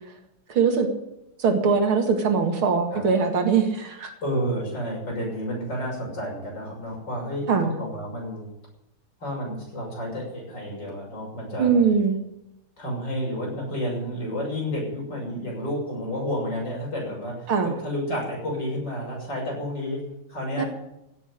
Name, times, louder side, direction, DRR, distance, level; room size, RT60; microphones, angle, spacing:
voice 1, 0.5-0.9 1.4-4.1 7.5-7.8 11.6-12.2 17.5-17.7 20.6-20.7, right 5 dB, 75° right, 4 dB, 2.8 m, -21 dB
voice 2, 4.2-8.5 9.2-11.9 12.8-20.7, equal, 50° left, -2 dB, 7.2 m, -31 dB
16.5 x 7.2 x 10.0 m, 0.87 s
omnidirectional pair, 2.4 m